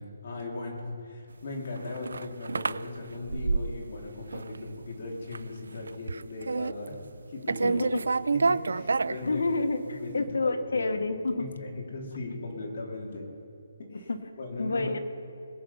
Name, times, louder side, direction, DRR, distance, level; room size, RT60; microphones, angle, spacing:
voice 1, 0.0-6.9 7.3-7.8 8.3-9.4 10.0-10.9 11.4-13.3 13.9-14.1 14.4-14.9, left 2 dB, 45° left, -1 dB, 2.9 m, -38 dB
sound 1, 1.5-4.0 4.3-4.9 5.2-5.5 5.8-7.2 7.5-9.8, right 4 dB, 85° right, 0.3 m, -29 dB
voice 2, 7.6-8.0 9.2-11.5 14.1-14.2 14.6-15.0, left 3 dB, 80° left, 7 dB, 1.3 m, -29 dB
21.5 x 7.9 x 5.6 m, 2.5 s
hypercardioid pair, 175°, 0 cm